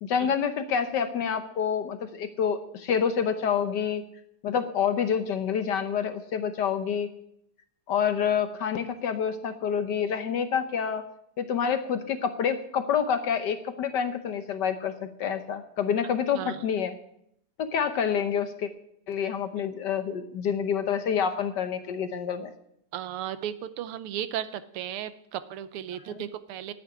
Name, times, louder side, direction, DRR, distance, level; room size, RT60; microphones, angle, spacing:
voice 1, 0.0-4.0 4.4-7.1 7.9-11.0 11.4-17.0 17.6-18.7 19.1-22.5 26.1-26.2, left 7 dB, 65° left, 10 dB, 1.2 m, -27 dB
voice 2, 22.9-26.7, right 11 dB, 85° right, 13 dB, 1.7 m, -35 dB
9.5 x 8.9 x 9.6 m, 0.76 s
omnidirectional pair, 2.4 m